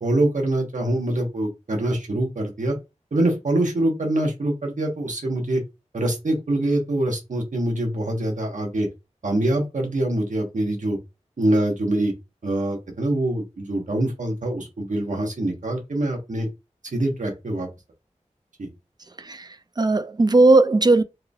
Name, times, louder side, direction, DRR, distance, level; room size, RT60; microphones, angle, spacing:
voice 1, 0.0-2.7 3.1-5.6 5.9-8.9 9.2-11.0 11.4-12.1 12.4-16.5 16.9-17.7 18.6-18.7, right 1 dB, 85° right, 1.2 m, -24 dB
voice 2, 19.2-21.0, right 2 dB, 35° right, 0.4 m, -17 dB
4.7 x 3.3 x 2.3 m
wide cardioid pair, 70°, 13 cm